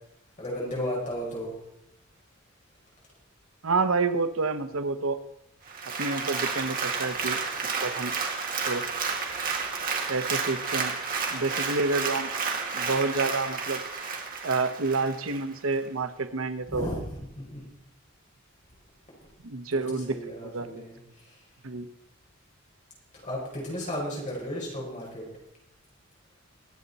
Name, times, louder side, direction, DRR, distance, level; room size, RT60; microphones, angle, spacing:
voice 1, 0.4-1.5 16.7-17.0 17.4-17.6 19.7-21.0 21.3-21.4 23.2-25.2, equal, 35° left, -4 dB, 5.3 m, -34 dB
voice 2, 3.6-5.2 6.0-8.1 8.7-8.9 10.1-10.9 11.3-12.3 12.7-13.8 14.4-16.9 19.4-20.2 20.4-20.8 21.6-21.9, right 3 dB, 80° right, 10 dB, 1.0 m, -29 dB
Applause, 5.7-15.4 15.9-16.0, right 5 dB, 45° right, 2.1 m, -31 dB
23.5 x 8.1 x 4.1 m, 0.85 s
head